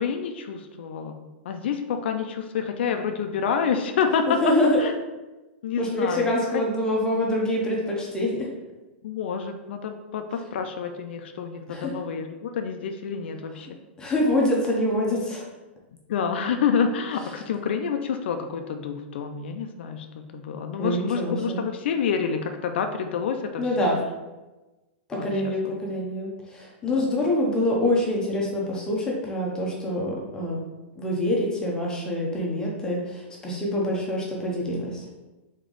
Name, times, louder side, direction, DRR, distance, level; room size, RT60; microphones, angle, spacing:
voice 1, 0.0-4.9 5.6-6.6 9.0-13.7 16.1-23.7 25.2-25.5 26.9-27.1, left 6 dB, 70° left, 6 dB, 0.4 m, -28 dB
voice 2, 4.3-4.8 5.8-8.5 11.7-11.9 14.0-15.5 20.8-21.6 23.6-24.0 25.1-30.6 31.0-35.0, left 1 dB, 10° left, -3 dB, 0.8 m, -25 dB
3.6 x 3.3 x 3.9 m, 1.1 s
hypercardioid pair, 145°, 6 cm